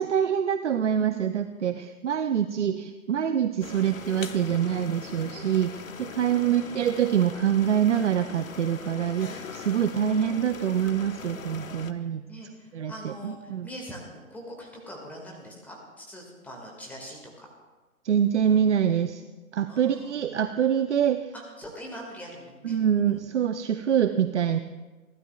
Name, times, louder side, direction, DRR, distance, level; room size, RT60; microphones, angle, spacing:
voice 1, 0.0-12.2 12.7-13.7 18.0-19.2 19.5-21.3 22.6-24.6, right 9 dB, 55° right, 10 dB, 0.6 m, -25 dB
sound 1, 3.6-11.9, left 6 dB, 65° left, 0.9 m, -41 dB
voice 2, 6.3-6.8 12.3-17.5 19.7-20.1 21.3-22.8 23.1-23.2, equal, 5° left, -1 dB, 1.8 m, -43 dB
29.5 x 12.5 x 2.3 m, 1.2 s
figure-of-eight pair, 130°, 44 cm